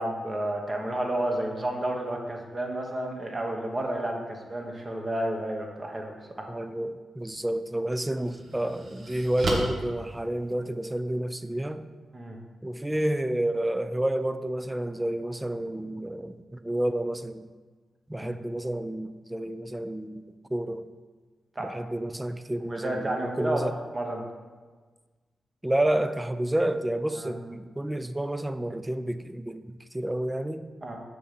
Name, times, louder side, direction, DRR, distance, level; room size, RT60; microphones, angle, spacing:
voice 1, 0.0-6.5 12.1-12.4 18.2-18.3 21.5-21.7 22.7-24.2 27.1-27.3 30.8-31.0, right 1 dB, 30° right, 1 dB, 1.2 m, -31 dB
voice 2, 6.5-11.9 12.6-17.5 18.1-20.2 20.5-20.9 21.6-23.7 25.6-30.7, right 1 dB, 10° right, 12 dB, 0.4 m, -30 dB
sound 1, 7.2-7.3 7.9-10.9, right 1 dB, 55° right, 1.3 m, -34 dB
6.5 x 3.9 x 5.9 m, 1.4 s
cardioid pair, 55°, 0 cm